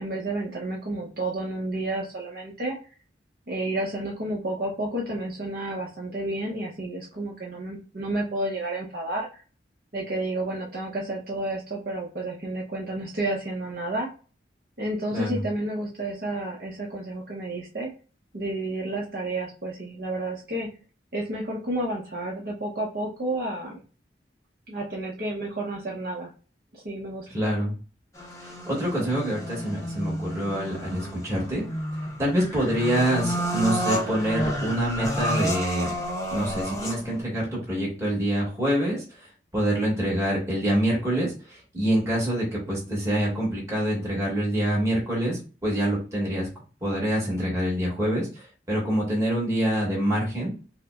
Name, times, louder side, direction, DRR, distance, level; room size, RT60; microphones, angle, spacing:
voice 1, 0.0-2.8 3.5-9.4 9.9-14.1 14.8-17.9 18.3-20.7 21.1-23.8 24.7-26.3 26.7-27.3, right 1 dB, 55° right, -2 dB, 0.8 m, -31 dB
voice 2, 15.1-15.4 27.3-27.7 28.4-31.6 32.2-35.9 36.3-39.0 39.5-46.5 46.8-50.5, equal, 15° right, -5 dB, 1.6 m, -26 dB
sound 1, 28.2-37.2, equal, 15° left, 0.7 m, -31 dB
5.5 x 2.1 x 2.4 m, 0.36 s
head